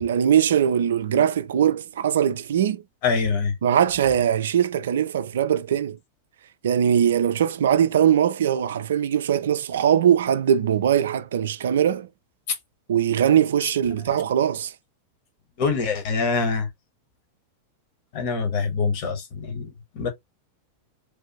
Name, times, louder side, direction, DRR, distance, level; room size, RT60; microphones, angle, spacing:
voice 1, 0.0-2.8 3.6-6.0 6.6-12.1 12.9-14.7, right 9 dB, 60° right, 0.3 m, -21 dB
voice 2, 3.0-3.5 15.6-16.7 18.1-20.1, left 4 dB, 45° left, 1.3 m, -25 dB
3.4 x 2.5 x 2.9 m
figure-of-eight pair, 90°, 0 cm